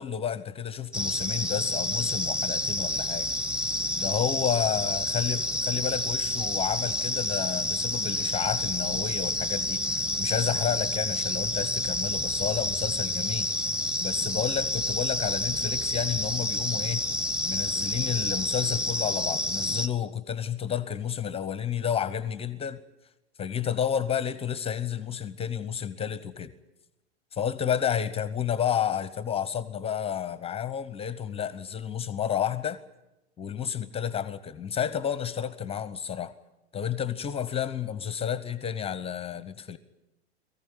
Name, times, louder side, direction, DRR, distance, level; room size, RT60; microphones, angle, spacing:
voice 1, 0.0-3.3 4.0-13.5 14.0-17.0 17.4-22.8 23.4-26.5 27.3-32.8 33.4-36.3 36.7-39.8, left 8 dB, 15° left, 0.9 m, -31 dB
sound 1, 0.9-19.9, left 2 dB, 5° right, 1.2 m, -29 dB
22.5 x 15.0 x 9.3 m
figure-of-eight pair, 95°, 33 cm